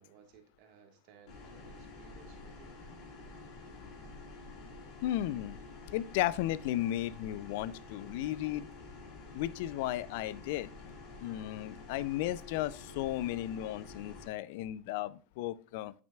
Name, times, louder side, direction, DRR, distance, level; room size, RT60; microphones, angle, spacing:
voice 1, 0.0-2.8, right 6 dB, 60° right, 1.4 m, -60 dB
sound 1, 1.3-14.3, left 3 dB, 50° left, 2.6 m, -49 dB
voice 2, 5.0-5.6 5.9-8.7 9.3-10.7 11.2-15.9, left 14 dB, 65° left, 0.4 m, -34 dB
8.7 x 6.0 x 2.3 m
hypercardioid pair, 100°, 0 cm